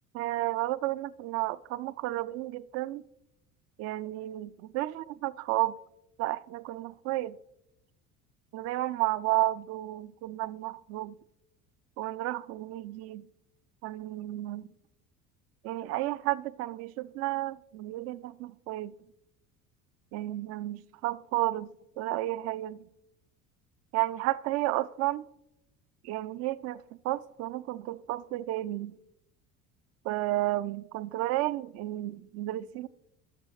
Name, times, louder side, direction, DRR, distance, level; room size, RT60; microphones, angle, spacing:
voice 1, 0.1-3.0 3.8-5.8 6.2-7.4 8.5-11.2 12.0-13.2 13.8-14.7 15.6-18.9 20.1-21.7 22.0-22.8 23.9-25.2 26.0-28.9 30.0-32.9, right 16 dB, 40° right, 0.4 m, -32 dB
15.0 x 6.7 x 3.2 m
figure-of-eight pair, 60°, 41 cm